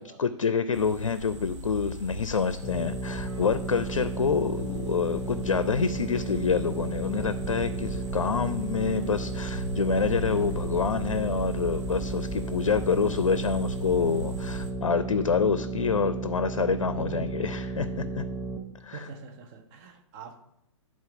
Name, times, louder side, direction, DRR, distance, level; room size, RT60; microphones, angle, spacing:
voice 1, 0.2-18.2 18.8-19.0, left 5 dB, 75° left, 12 dB, 0.5 m, -27 dB
sound 1, 0.7-14.7, right 1 dB, 60° right, 1.2 m, -37 dB
sound 2, 2.6-18.6, right 3 dB, 20° left, 0.9 m, -34 dB
voice 2, 16.9-17.8 18.9-20.4, right 4 dB, 30° right, 5 dB, 1.1 m, -43 dB
10.5 x 3.9 x 4.9 m, 0.82 s
figure-of-eight pair, 125°, 17 cm